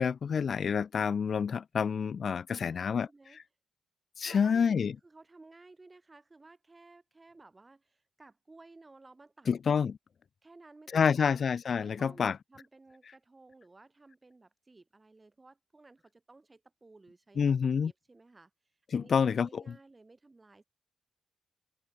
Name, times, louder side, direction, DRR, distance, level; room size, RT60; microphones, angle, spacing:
voice 1, 0.0-3.1 4.2-4.9 9.5-10.0 10.9-12.4 17.4-17.9 18.9-19.7, left 6 dB, 55° left, 0.5 m, -28 dB
voice 2, 2.5-3.4 4.2-9.5 10.4-11.5 11.8-18.5 18.9-20.6, right 3 dB, 20° right, 8.0 m, -56 dB
cardioid pair, 110°, 0 cm